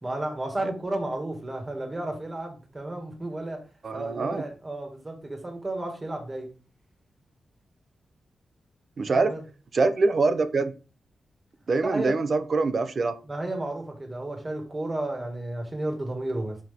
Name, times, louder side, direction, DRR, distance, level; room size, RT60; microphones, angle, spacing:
voice 1, 0.0-3.6 3.9-6.5 9.1-9.4 11.8-12.2 13.3-16.6, right 1 dB, 25° right, 2.1 m, -32 dB
voice 2, 3.8-4.4 9.0-9.3 9.7-10.7 11.7-13.2, right 3 dB, 50° right, 0.7 m, -24 dB
5.8 x 5.0 x 3.7 m
cardioid pair, 95°, 0 cm